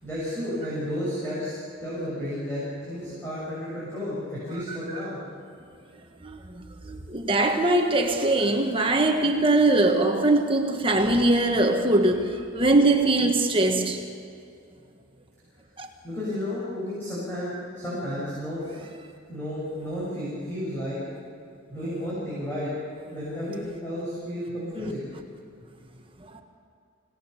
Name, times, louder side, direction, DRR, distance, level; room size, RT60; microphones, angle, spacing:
voice 1, 0.0-5.2 16.0-18.8 19.3-21.0 21.7-22.7 23.1-25.0, left 1 dB, 10° left, 6.9 m, -32 dB
voice 2, 4.7-5.0 6.2-14.0 15.8-15.9 26.3-26.4, right 2 dB, 25° right, 1.4 m, -22 dB
25.5 x 18.0 x 7.1 m
head